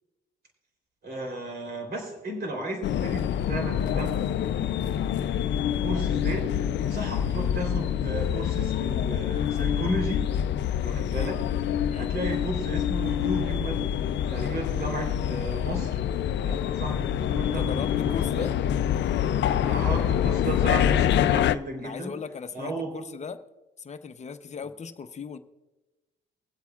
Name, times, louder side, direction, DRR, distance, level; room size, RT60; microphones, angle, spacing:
voice 1, 1.0-10.3 10.8-11.4 11.9-13.8 14.3-16.0 16.4-18.6 19.6-22.1 22.5-22.9, right 2 dB, 55° right, 1 dB, 3.5 m, -34 dB
sound 1, 2.8-21.6, left 10 dB, 65° left, 0.5 m, -26 dB
voice 2, 17.4-18.5 21.8-23.4 23.8-25.4, left 6 dB, 35° left, 10 dB, 0.7 m, -37 dB
24.0 x 8.2 x 2.4 m, 1.1 s
cardioid pair, 90°, 20 cm